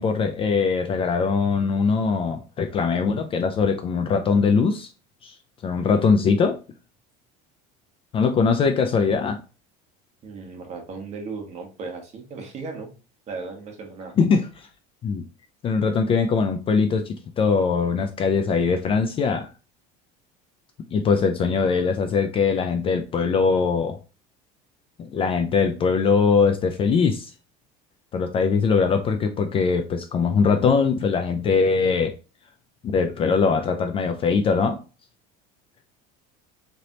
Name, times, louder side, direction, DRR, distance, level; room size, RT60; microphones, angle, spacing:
voice 1, 0.0-4.9 5.2-5.3 5.6-6.6 8.1-9.4 14.2-14.7 15.0-15.2 15.6-19.5 20.9-24.0 25.0-27.3 28.1-32.1 32.8-34.8, left 5 dB, 30° left, 0.4 m, -21 dB
voice 2, 10.2-12.9 13.3-14.1, right 4 dB, 35° right, 1.3 m, -36 dB
3.9 x 3.3 x 2.9 m
cardioid pair, 140°, 19 cm